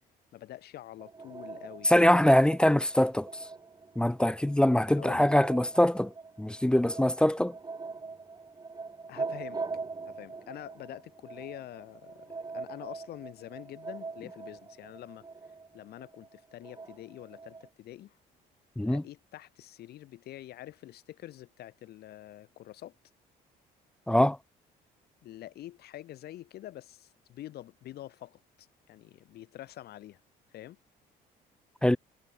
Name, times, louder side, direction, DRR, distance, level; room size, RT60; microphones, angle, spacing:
voice 1, 0.3-2.3 4.9-5.3 9.1-9.6 10.1-15.3 15.7-18.1 18.8-22.9 25.2-30.2 30.5-30.8, left 14 dB, 70° left, 5.8 m, -46 dB
sound 1, 1.0-17.7, right 4 dB, 25° right, 5.0 m, -42 dB
voice 2, 1.9-3.3 4.0-6.1 6.4-7.5 18.8-19.0 24.1-24.4 31.8-32.0, left 1 dB, 5° left, 0.5 m, -23 dB
cardioid pair, 110°, 17 cm